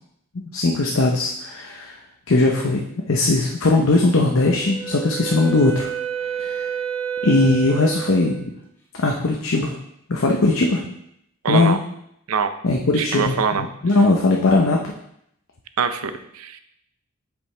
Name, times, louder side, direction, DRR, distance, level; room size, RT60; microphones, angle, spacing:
voice 1, 0.3-2.0 2.3-5.9 6.3-6.7 7.2-8.5 9.0-9.7 10.1-10.8 11.5-11.8 12.6-14.9, left 2 dB, 70° left, 0 dB, 0.7 m, -19 dB
Wind instrument woodwind instrument, 4.4-8.4, right 8 dB, 10° left, 1.3 m, -29 dB
voice 2, 11.4-11.8 12.3-12.5 13.0-13.7 15.8-16.6, right 6 dB, 90° right, 10 dB, 0.5 m, -23 dB
7.4 x 5.2 x 3.3 m, 0.74 s
head